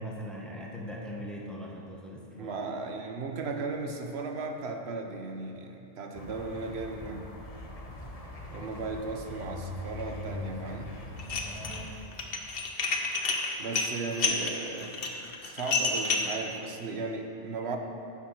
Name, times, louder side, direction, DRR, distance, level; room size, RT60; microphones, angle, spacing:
voice 1, 0.0-2.5 8.5-8.7 11.4-11.9, equal, ahead, -3 dB, 1.2 m, -41 dB
voice 2, 2.4-7.2 8.5-10.9 13.6-15.0 15.4-17.8, right 3 dB, 90° right, 4 dB, 1.1 m, -36 dB
sound 1, 6.1-12.0, left 2 dB, 35° left, 1.1 m, -41 dB
Dishes pots and pans, 11.2-11.8 12.1-16.4, left 4 dB, 65° left, 1.1 m, -29 dB
9.6 x 7.2 x 6.0 m, 2.8 s
omnidirectional pair, 1.1 m